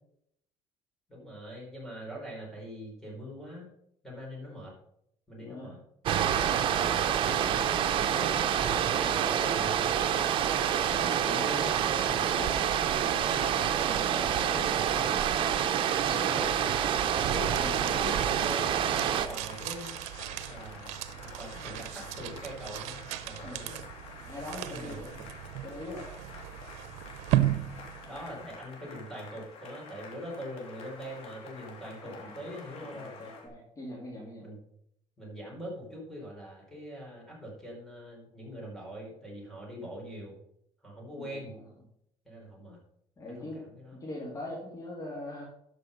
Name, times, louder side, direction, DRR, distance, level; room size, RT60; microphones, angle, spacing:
voice 1, 1.1-3.7 4.0-4.7 5.3-5.8 6.4-10.0 10.7-15.6 16.0-16.8 17.1-19.9 20.4-20.9 21.2-23.8 24.6-25.3 28.0-33.2 34.4-34.6 35.2-40.4 40.8-41.5 42.2-42.8 43.3-44.0, equal, ahead, -3 dB, 4.6 m, -42 dB
voice 2, 5.4-5.7 17.5-18.0 23.4-23.6 24.3-25.0 25.6-26.1 32.0-32.4 32.9-34.5 41.1-41.7 43.2-43.6 43.9-45.4, left 1 dB, 30° left, -3 dB, 2.8 m, -42 dB
sound 1, 6.1-19.3, right 9 dB, 50° right, 0.8 m, -27 dB
sound 2, 17.3-28.7, right 14 dB, 85° right, 0.7 m, -36 dB
Cheering / Applause, 18.7-33.5, left 4 dB, 60° left, 2.8 m, -48 dB
12.5 x 5.4 x 5.4 m, 0.74 s
cardioid pair, 125°, 11 cm